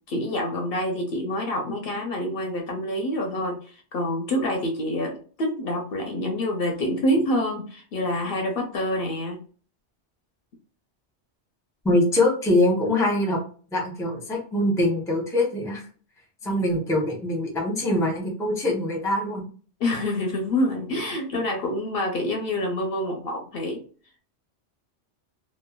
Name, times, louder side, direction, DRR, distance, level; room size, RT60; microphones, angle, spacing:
voice 1, 0.1-9.4 19.8-23.8, left 1 dB, 65° left, 2 dB, 0.7 m, -27 dB
voice 2, 11.8-13.4 13.7-15.8 16.4-19.4, left 1 dB, 5° left, 0 dB, 0.5 m, -23 dB
3.0 x 2.1 x 2.2 m, 0.40 s
omnidirectional pair, 1.2 m